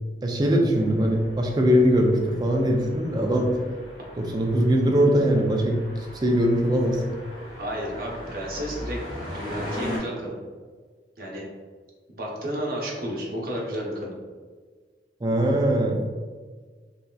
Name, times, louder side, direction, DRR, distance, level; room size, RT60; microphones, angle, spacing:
voice 1, 0.2-3.6 4.2-5.8 6.2-7.0 15.2-16.0, equal, 25° right, 1 dB, 0.3 m, -21 dB
sound 1, 0.7-10.0, left 1 dB, 25° left, 1.2 m, -39 dB
voice 2, 7.6-9.0 9.3-10.4 11.2-11.5 12.2-14.1, equal, 55° right, -3 dB, 0.8 m, -32 dB
3.2 x 2.7 x 2.2 m, 1.5 s
head